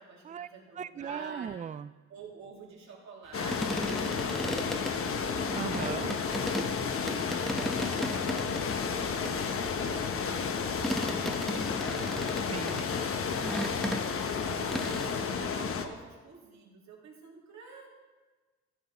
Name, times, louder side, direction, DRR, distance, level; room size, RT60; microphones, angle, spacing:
voice 1, 0.0-1.6 2.1-5.5 6.2-10.5 10.8-18.0, right 4 dB, 65° right, -3 dB, 3.1 m, -49 dB
voice 2, 0.8-1.9 5.5-6.1 12.5-12.8, right 8 dB, 25° right, 15 dB, 0.3 m, -37 dB
sound 1, 3.3-15.9, left 6 dB, 45° left, 1.0 m, -32 dB
sound 2, 3.5-6.7 7.1-8.8 9.3-14.4 14.7-15.1, equal, ahead, 1.0 m, -36 dB
13.5 x 7.1 x 4.2 m, 1.3 s
cardioid pair, 90°, 30 cm